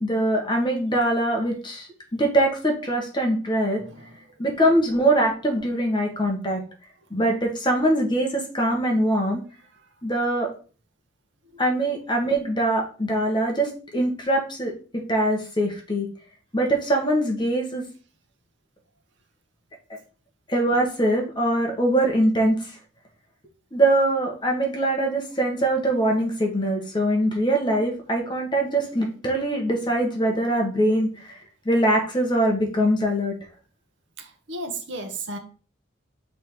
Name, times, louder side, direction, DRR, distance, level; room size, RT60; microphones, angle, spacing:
voice 1, 0.0-3.8 4.4-6.6 7.1-9.4 10.0-10.5 11.6-16.1 16.5-17.8 20.5-22.7 23.7-31.4 31.6-33.3, right 1 dB, 25° left, 1 dB, 1.5 m, -23 dB
voice 2, 3.9-4.2 9.7-9.9 34.2-35.4, right 2 dB, 65° right, 6 dB, 1.1 m, -34 dB
6.1 x 3.8 x 4.7 m, 0.37 s
head